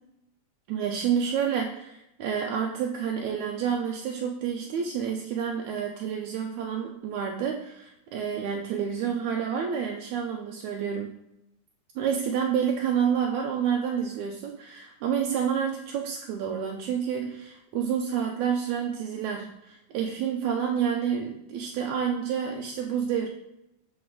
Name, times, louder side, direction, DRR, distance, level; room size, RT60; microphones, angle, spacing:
voice 1, 0.7-11.1 12.0-23.3, right 7 dB, 80° right, 2 dB, 1.8 m, -29 dB
10.0 x 3.9 x 3.7 m, 0.85 s
omnidirectional pair, 3.7 m